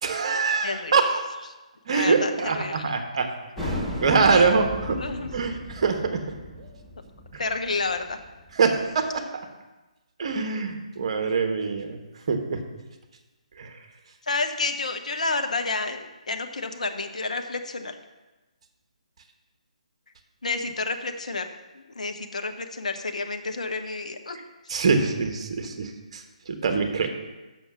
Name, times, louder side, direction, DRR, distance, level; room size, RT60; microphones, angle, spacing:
voice 1, 0.0-1.2 1.9-3.3 3.6-5.0 5.3-6.2 6.6-6.7 8.5-9.2 10.2-12.0 12.3-12.6 13.6-13.7 24.7-27.1, right 4 dB, 50° right, 5 dB, 1.2 m, -24 dB
voice 2, 0.6-0.9 1.9-2.9 4.3-4.5 5.0-5.3 7.4-8.2 14.3-18.0 20.4-21.5 21.7-24.4, left 3 dB, 70° left, 6 dB, 0.9 m, -30 dB
sound 1, 3.6-8.9, left 1 dB, 5° left, 1.8 m, -35 dB
6.8 x 6.2 x 5.8 m, 1.1 s
figure-of-eight pair, 140°, 4 cm